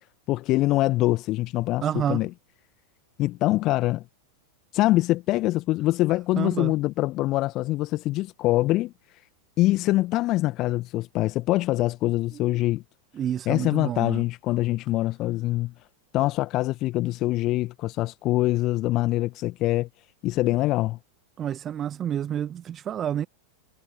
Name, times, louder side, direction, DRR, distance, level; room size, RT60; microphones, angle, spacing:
voice 1, 0.3-1.8 2.1-2.3 3.2-4.0 4.7-8.9 9.6-12.8 13.5-15.7 16.1-19.9 20.2-21.0, left 17 dB, 35° left, 1.5 m, -24 dB
voice 2, 1.8-2.3 6.3-6.7 12.3-12.6 13.1-14.2 20.4-20.5 21.4-23.3, right 10 dB, 25° right, 1.3 m, -29 dB
figure-of-eight pair, 90°, 0 cm